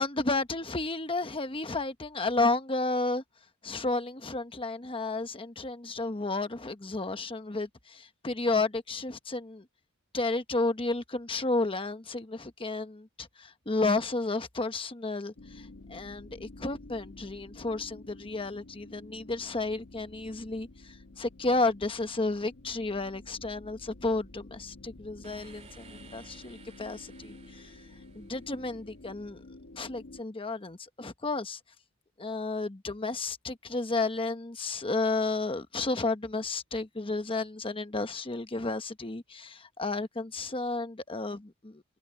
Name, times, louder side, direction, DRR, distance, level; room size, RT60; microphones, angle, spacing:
voice 1, 0.0-3.2 3.6-9.6 10.1-27.7 28.1-29.4 29.7-31.6 32.2-41.8, left 3 dB, 25° left, 1.1 m, -32 dB
sound 1, 15.4-30.2, left 2 dB, 65° left, 1.2 m, -50 dB
sound 2, 25.2-29.1, right 4 dB, 30° right, 2.0 m, -56 dB
head